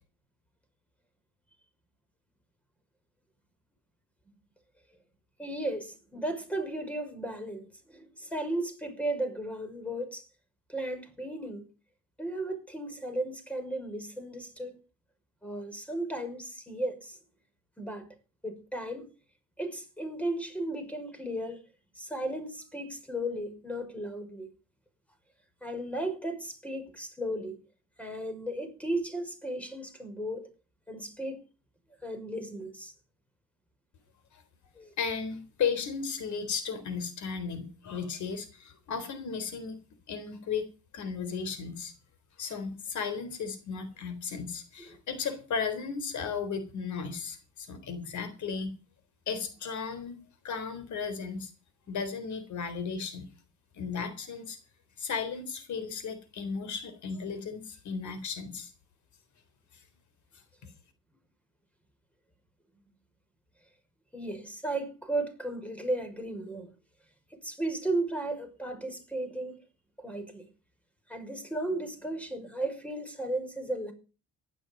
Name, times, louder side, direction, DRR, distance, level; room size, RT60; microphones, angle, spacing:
voice 1, 5.4-10.3 10.7-11.6 12.2-14.8 15.4-17.2 17.8-18.1 18.4-19.1 19.6-21.6 21.9-24.5 25.6-27.6 28.0-30.5 30.9-31.5 32.0-32.9 34.8-34.9 44.8-45.0 64.1-66.7 67.3-69.6 70.0-70.5 71.1-73.9, right 1 dB, 5° left, 5.8 m, -35 dB
voice 2, 35.0-39.8 40.1-40.7 40.9-41.9 42.4-48.7 49.3-51.5 51.9-53.3 53.7-54.6 55.0-58.7 59.7-59.8, left 6 dB, 70° left, 3.8 m, -35 dB
15.5 x 11.5 x 5.4 m
cardioid pair, 90°, 30 cm